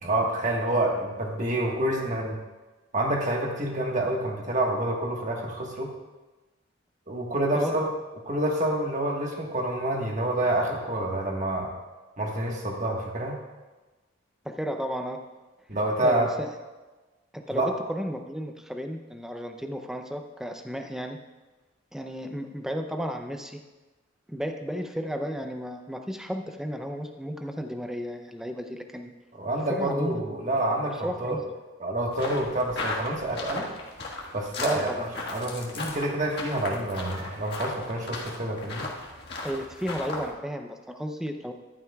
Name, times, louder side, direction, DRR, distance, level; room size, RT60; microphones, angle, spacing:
voice 1, 0.0-2.4 2.9-5.9 7.1-7.9 8.3-11.7 12.2-13.4 15.7-16.3 17.5-17.7 29.4-31.4 31.8-33.7 34.3-38.9, right 1 dB, 35° right, 0 dB, 1.4 m, -28 dB
voice 2, 14.4-15.2 16.0-16.5 17.3-21.2 21.9-23.6 24.3-29.1 29.7-30.4 30.9-31.4 34.6-35.1 39.4-41.5, equal, ahead, 5 dB, 0.5 m, -33 dB
Footstep gravel sneakers, 32.1-40.3, left 3 dB, 55° left, 1.6 m, -36 dB
14.0 x 11.5 x 2.3 m, 1.2 s
head